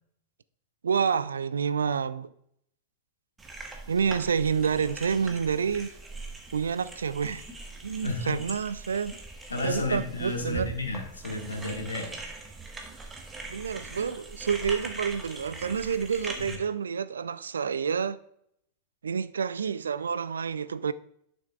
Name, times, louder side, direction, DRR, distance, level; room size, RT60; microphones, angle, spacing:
voice 1, 0.8-2.3 3.9-5.9 6.5-7.4 7.8-9.2 9.6-10.7 13.5-18.2 19.0-20.9, right 6 dB, 70° right, 0.3 m, -28 dB
sound 1, 3.4-16.6, right 3 dB, 15° right, 1.3 m, -42 dB
voice 2, 8.0-8.4 9.5-12.1, left 2 dB, 75° left, 1.5 m, -32 dB
10.5 x 6.2 x 2.4 m
figure-of-eight pair, 90°, 0 cm